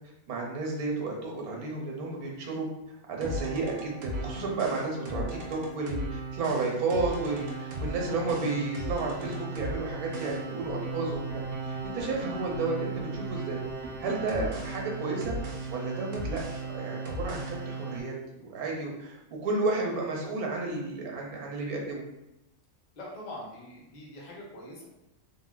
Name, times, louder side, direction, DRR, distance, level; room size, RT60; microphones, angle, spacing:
voice 1, 0.3-2.7 3.1-5.2 5.5-13.6 14.0-16.4 16.7-22.0, right 3 dB, 85° right, -1 dB, 1.1 m, -32 dB
sound 1, 3.2-18.0, right 2 dB, 65° right, 0.5 m, -36 dB
voice 2, 23.0-24.8, left 1 dB, 45° left, -4 dB, 0.6 m, -43 dB
3.5 x 2.0 x 2.3 m, 0.90 s
omnidirectional pair, 1.5 m